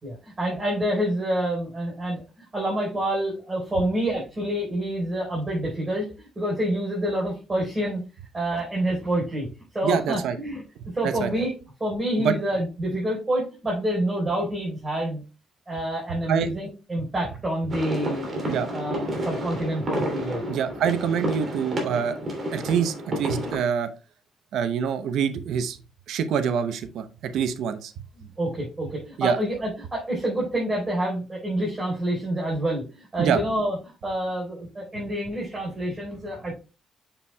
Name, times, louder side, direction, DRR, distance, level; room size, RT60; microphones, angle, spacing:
voice 1, 0.0-8.0 8.3-9.5 9.7-10.6 10.9-11.5 11.8-15.2 15.7-18.3 18.7-20.4 28.2-33.8 34.0-36.6, right 1 dB, 30° right, -4 dB, 4.2 m, -27 dB
voice 2, 9.8-10.4 11.0-11.3 12.2-12.3 16.3-16.5 18.5-18.7 20.5-22.2 22.5-23.9 24.5-25.8 26.1-27.9 29.2-29.4 33.2-33.4, right 7 dB, 80° right, 11 dB, 0.7 m, -25 dB
sound 1, 17.7-23.5, right 1 dB, 45° right, 2.8 m, -30 dB
7.2 x 7.0 x 2.3 m, 0.31 s
cardioid pair, 85°, 0 cm